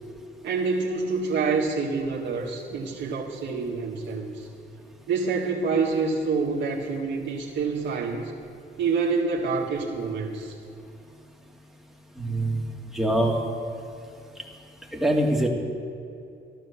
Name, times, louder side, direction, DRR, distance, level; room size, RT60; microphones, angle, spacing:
voice 1, 0.4-4.5 5.1-8.3 8.8-10.6, right 4 dB, 70° right, -3 dB, 1.9 m, -27 dB
voice 2, 12.2-12.6 12.9-13.4 14.9-15.5, right 1 dB, ahead, -1 dB, 2.5 m, -23 dB
14.0 x 12.0 x 7.1 m, 2.7 s
cardioid pair, 90°, 20 cm